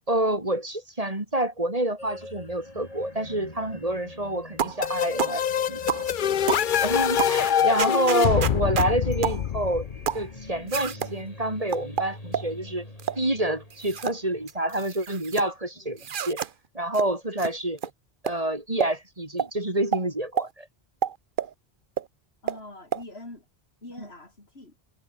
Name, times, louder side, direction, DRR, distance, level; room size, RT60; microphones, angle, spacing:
voice 1, 0.1-5.8 6.8-9.9 10.1-12.9 13.1-16.0 16.3-16.4 16.7-17.8 18.2-20.7 24.0-24.1, right 1 dB, 35° right, 3.4 m, -27 dB
sound 1, 2.0-15.0, left 1 dB, 35° left, 5.0 m, -44 dB
sound 2, 4.6-4.8 5.2-5.4 5.9-6.1 6.5-6.7 7.2-7.4 7.8-8.9 9.2-9.4 10.1-10.3 10.7-11.1 11.7-12.5 13.0-13.2 13.7-14.2 14.5-15.5 16.0-16.5 16.9-17.1 17.4-17.5 17.8-17.9 18.3-18.4 18.8-18.9 19.4-19.5 19.9-20.0 20.4-20.5 21.0-21.5 22.0-22.1 22.5-22.6 22.9-23.0, right 8 dB, 55° right, 0.9 m, -29 dB
sound 3, 4.8-10.5, left 9 dB, 55° left, 0.7 m, -25 dB
voice 2, 22.4-23.4 23.8-24.8, left 2 dB, 75° left, 4.9 m, -44 dB
omnidirectional pair, 1.1 m